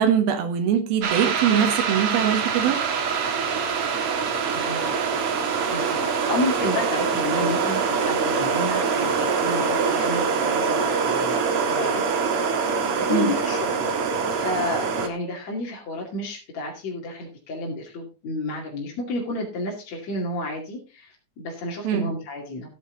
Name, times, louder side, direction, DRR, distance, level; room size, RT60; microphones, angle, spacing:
voice 1, 0.0-2.8 13.1-13.3 21.8-22.1, right 8 dB, 85° right, 6 dB, 3.3 m, -22 dB
sound 1, 1.0-15.1, right 5 dB, 50° right, 2.0 m, -24 dB
voice 2, 4.5-5.1 5.7-22.7, left 2 dB, 50° left, -2 dB, 3.5 m, -31 dB
14.5 x 8.8 x 3.9 m, 0.31 s
omnidirectional pair, 4.2 m